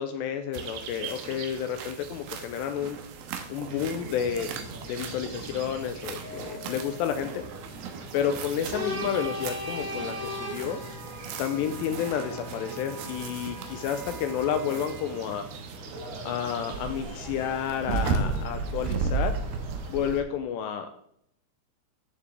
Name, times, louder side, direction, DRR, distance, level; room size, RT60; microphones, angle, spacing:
voice 1, 0.0-3.0 3.5-4.6 4.9-7.4 8.1-10.8 11.4-15.5 16.2-19.3 19.9-21.0, left 8 dB, 85° left, 7 dB, 2.5 m, -30 dB
sound 1, 0.5-20.2, right 5 dB, 75° right, 2.5 m, -36 dB
sound 2, 3.6-19.9, equal, 40° right, 3.3 m, -40 dB
Mallet percussion, 6.2-8.5, left 6 dB, 65° left, 1.3 m, -49 dB
13.5 x 7.3 x 3.4 m, 0.72 s
omnidirectional pair, 5.5 m